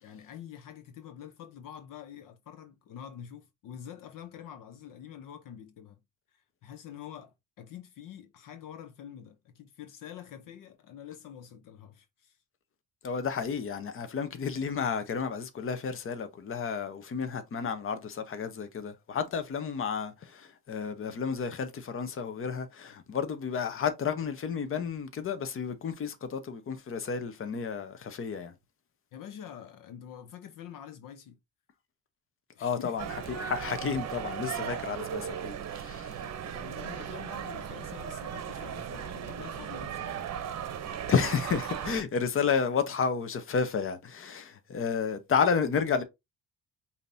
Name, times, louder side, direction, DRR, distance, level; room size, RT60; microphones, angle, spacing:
voice 1, 0.0-6.0 6.3-12.4 29.1-31.4 32.5-33.0 36.1-40.8, left 9 dB, 70° left, 0.7 m, -46 dB
voice 2, 13.0-28.5 32.6-33.1 33.4-36.2 41.1-46.0, left 6 dB, 40° left, 0.8 m, -31 dB
sound 1, 33.0-42.0, right 8 dB, 50° right, 0.8 m, -37 dB
5.1 x 2.8 x 2.6 m
cardioid pair, 105°, 34 cm